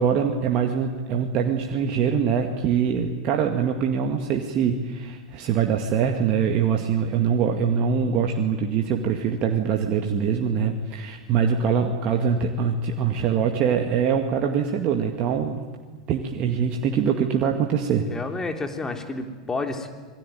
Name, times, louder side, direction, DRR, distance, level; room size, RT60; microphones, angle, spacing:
voice 1, 0.0-15.6 16.1-18.1, right 7 dB, 40° right, 3 dB, 2.2 m, -23 dB
voice 2, 18.0-19.9, left 3 dB, 15° left, 5 dB, 3.4 m, -30 dB
27.0 x 22.0 x 9.4 m, 1.4 s
figure-of-eight pair, 90°, 3 cm